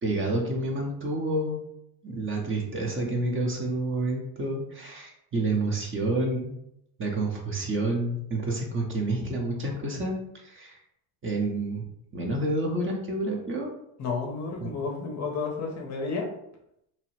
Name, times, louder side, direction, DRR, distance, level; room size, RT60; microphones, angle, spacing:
voice 1, 0.0-1.6 2.0-6.5 7.0-10.2 10.4-10.8 11.2-11.8 12.1-13.7 14.6-14.7, right 2 dB, 30° right, 0 dB, 0.7 m, -29 dB
voice 2, 14.0-16.3, left 4 dB, 40° left, 2 dB, 0.6 m, -31 dB
2.9 x 2.0 x 3.0 m, 0.78 s
supercardioid pair, 90°, 44 cm